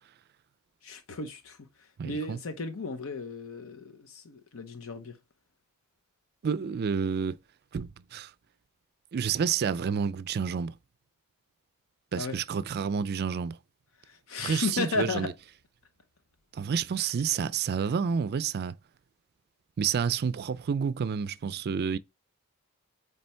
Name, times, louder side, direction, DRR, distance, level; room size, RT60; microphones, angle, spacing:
voice 1, 0.8-1.6 2.0-5.2 12.2-12.4 14.1-15.3, left 3 dB, 65° left, 0.8 m, -34 dB
voice 2, 2.0-2.4 6.4-7.4 7.7-8.3 9.1-10.7 12.1-13.6 14.4-15.3 16.5-18.8 19.8-22.0, right 6 dB, 45° right, 0.4 m, -29 dB
8.7 x 3.4 x 3.3 m
head